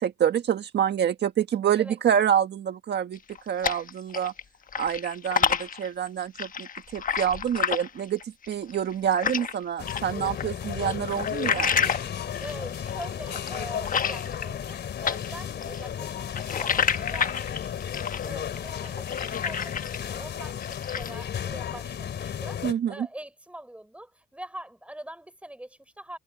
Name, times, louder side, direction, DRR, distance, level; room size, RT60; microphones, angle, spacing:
voice 1, 0.0-3.2 3.5-4.3 4.8-6.7 6.9-11.9 22.6-23.1, right 9 dB, 60° right, 1.6 m, -27 dB
sound 1, 3.1-4.4 4.7-9.5 9.9-14.8 15.0-20.2 20.5-21.2, left 7 dB, 45° left, 1.2 m, -29 dB
sound 2, 9.8-22.7, left 9 dB, 60° left, 3.7 m, -34 dB
voice 2, 12.4-17.8 18.2-26.2, right 1 dB, 5° right, 6.1 m, -43 dB
cardioid pair, 90°, 20 cm